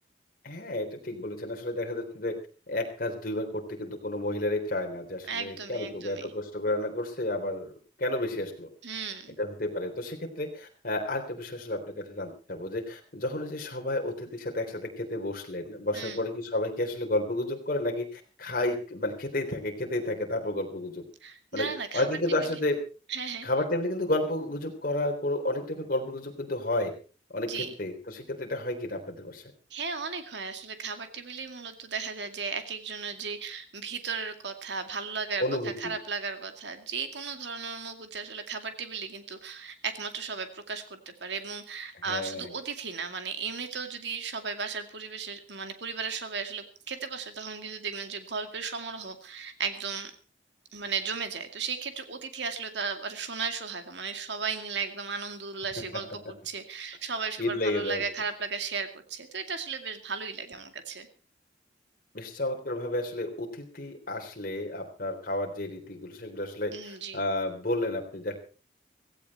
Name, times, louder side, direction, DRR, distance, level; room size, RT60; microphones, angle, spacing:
voice 1, 0.4-2.4 2.7-7.7 8.0-8.7 9.4-21.0 21.5-22.8 23.4-26.9 27.3-29.4 35.4-35.9 41.9-42.5 57.4-58.0 62.1-68.4, left 1 dB, 50° left, 3 dB, 3.5 m, -31 dB
voice 2, 5.3-6.3 8.8-9.4 15.9-16.2 21.2-22.1 23.1-23.5 27.5-27.7 29.7-50.1 50.7-61.1 66.7-67.2, right 5 dB, 75° right, 7 dB, 2.3 m, -35 dB
16.5 x 15.5 x 4.2 m, 0.37 s
head